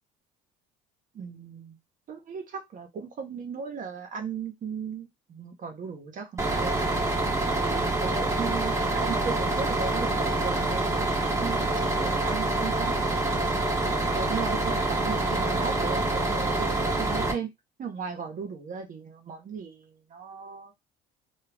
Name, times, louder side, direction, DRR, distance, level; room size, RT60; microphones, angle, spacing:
voice 1, 1.1-1.8 2.1-6.9 7.6-11.1 11.4-13.0 14.1-17.5 17.8-20.7, right 6 dB, 50° right, 1.0 m, -36 dB
Bus, 6.4-17.3, right 2 dB, 15° right, 1.0 m, -26 dB
2.4 x 2.3 x 3.3 m
supercardioid pair, 70°, 18 cm